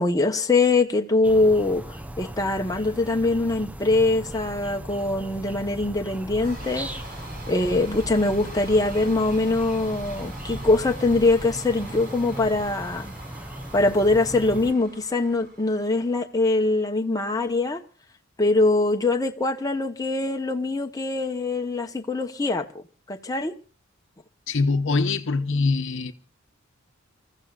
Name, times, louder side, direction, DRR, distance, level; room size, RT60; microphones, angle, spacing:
voice 1, 0.0-6.9 7.5-13.1 13.7-17.8 18.4-22.8 23.1-23.5, left 2 dB, 15° left, 0.9 m, -23 dB
sound 1, 1.2-14.7, right 1 dB, 5° right, 0.7 m, -38 dB
sound 2, 5.9-16.4, right 1 dB, 50° right, 4.7 m, -42 dB
voice 2, 24.5-26.1, left 3 dB, 65° left, 0.9 m, -23 dB
29.5 x 14.5 x 2.4 m
head